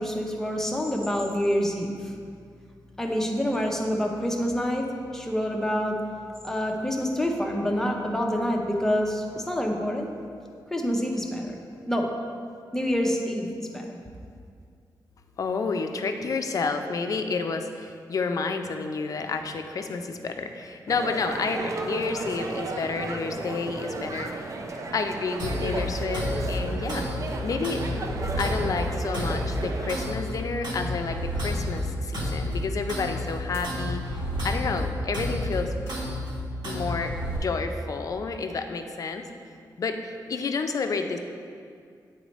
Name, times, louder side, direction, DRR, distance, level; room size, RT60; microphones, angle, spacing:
voice 1, 0.0-2.1 3.0-4.9 5.1-6.0 6.4-10.1 10.7-11.6 11.9-12.1 12.7-13.9, equal, 5° left, 0 dB, 0.6 m, -27 dB
voice 2, 15.4-24.4 24.9-27.0 27.4-27.8 28.4-35.7 36.6-39.3 39.8-41.2, left 4 dB, 50° left, 6 dB, 0.4 m, -30 dB
sound 1, 20.9-30.1, right 3 dB, 45° right, 0.4 m, -34 dB
sound 2, 25.4-37.4, left 1 dB, 70° right, 1.5 m, -31 dB
sound 3, 33.5-33.9 35.8-36.2, left 2 dB, 35° left, 0.8 m, -45 dB
8.9 x 4.2 x 3.1 m, 2.3 s
wide cardioid pair, 145°, 8 cm